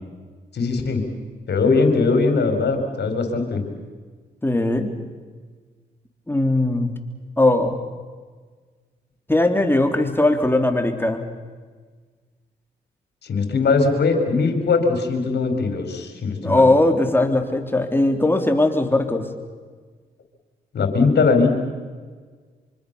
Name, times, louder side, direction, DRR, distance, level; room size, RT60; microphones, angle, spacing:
voice 1, 0.5-1.0 1.5-3.6 13.2-16.7 20.7-21.5, left 4 dB, 65° left, 5 dB, 4.9 m, -20 dB
voice 2, 4.4-4.9 6.3-6.9 7.4-7.8 9.3-11.2 16.4-19.3, left 2 dB, 10° left, 5 dB, 3.8 m, -19 dB
25.0 x 25.0 x 7.1 m, 1.5 s
supercardioid pair, 50°, 18 cm